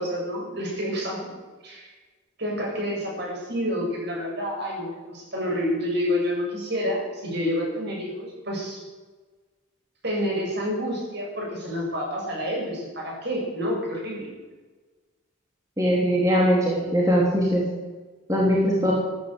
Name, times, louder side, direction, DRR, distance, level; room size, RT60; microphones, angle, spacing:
voice 1, 0.0-1.3 1.6-1.9 2.4-8.8 10.0-14.3, equal, 55° right, -2 dB, 7.3 m, -28 dB
voice 2, 15.8-17.6 18.3-18.9, equal, 15° right, -4 dB, 3.2 m, -21 dB
13.5 x 13.0 x 8.1 m, 1.3 s
head